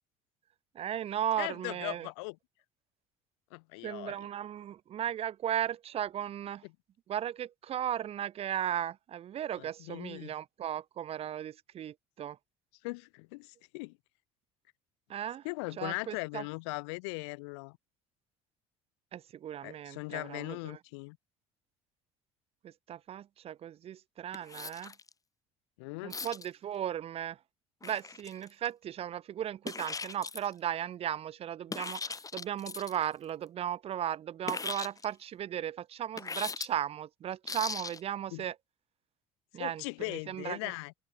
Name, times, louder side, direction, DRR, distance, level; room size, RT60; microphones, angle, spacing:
voice 1, 0.7-2.1 3.8-6.6 7.1-12.4 15.1-15.4 15.8-16.4 19.1-20.8 22.6-24.9 26.0-27.4 27.8-38.5 39.5-39.8 40.1-40.7, right 10 dB, 45° right, 0.7 m, -36 dB
voice 2, 1.4-2.4 3.5-4.1 9.6-10.3 12.8-14.0 15.4-17.8 19.6-21.2 25.8-26.2 38.3-38.4 39.6-40.9, left 29 dB, 85° left, 4.9 m, -39 dB
sound 1, 24.3-25.1 26.1-26.5 27.8-28.7 29.7-30.5 31.7-33.0 34.5-35.1 36.2-36.7 37.5-38.0, left 4 dB, 25° left, 3.5 m, -39 dB
supercardioid pair, 85°, 14 cm